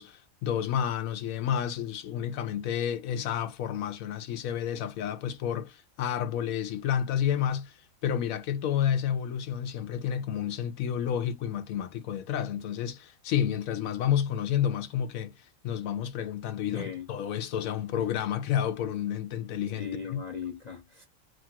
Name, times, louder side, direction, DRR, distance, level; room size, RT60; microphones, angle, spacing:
voice 1, 0.0-20.2, left 9 dB, 90° left, 1.0 m, -30 dB
voice 2, 16.7-17.1 19.8-21.1, left 6 dB, 50° left, 0.5 m, -38 dB
2.9 x 2.4 x 2.8 m
omnidirectional pair, 1.4 m